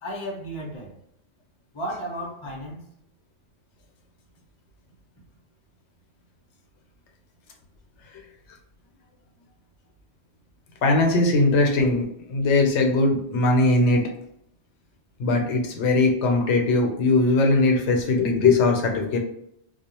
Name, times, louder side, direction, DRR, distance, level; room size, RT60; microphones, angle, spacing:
voice 1, 0.0-0.9 1.7-2.8, equal, 35° left, -1 dB, 0.5 m, -33 dB
voice 2, 10.8-14.0 15.2-19.2, left 2 dB, 85° left, 2 dB, 0.9 m, -20 dB
2.4 x 2.1 x 2.8 m, 0.73 s
omnidirectional pair, 1.2 m